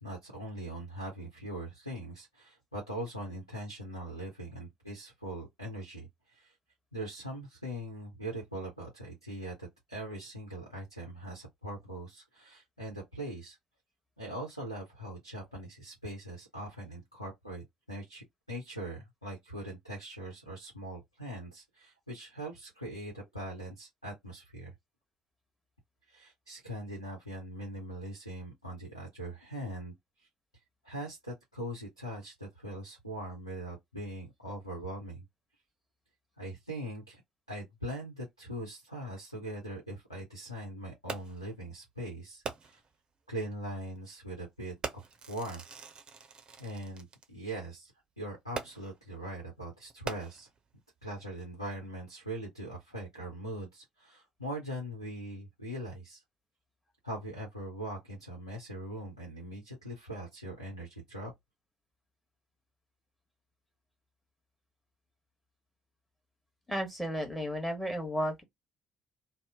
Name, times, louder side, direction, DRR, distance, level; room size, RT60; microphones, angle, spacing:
voice 1, 0.0-6.5 6.9-13.6 14.2-24.7 26.1-30.3 30.8-35.2 36.4-37.2 37.5-42.8 43.3-45.6 46.6-47.9 48.2-50.5 51.0-56.2 57.0-61.3, right 1 dB, 90° left, 0.7 m, -41 dB
Fireworks, 41.1-41.5 42.4-43.0 43.8-44.0 44.8-47.3 48.5-49.1 49.9-50.7 51.4-51.5, right 5 dB, 35° right, 0.7 m, -42 dB
voice 2, 66.7-68.4, equal, 5° left, 1.3 m, -33 dB
2.8 x 2.0 x 3.5 m
figure-of-eight pair, 50°, 2 cm